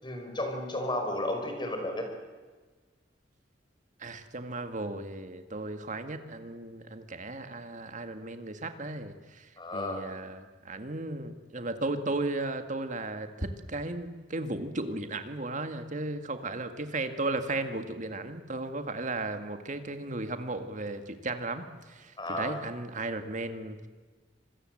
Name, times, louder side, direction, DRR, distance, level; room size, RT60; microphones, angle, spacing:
voice 1, 0.0-2.1 9.6-10.1 22.2-22.6, left 1 dB, 25° left, 4 dB, 5.2 m, -33 dB
voice 2, 4.0-23.9, right 2 dB, 40° right, 8 dB, 2.0 m, -35 dB
26.5 x 21.0 x 7.9 m, 1.3 s
head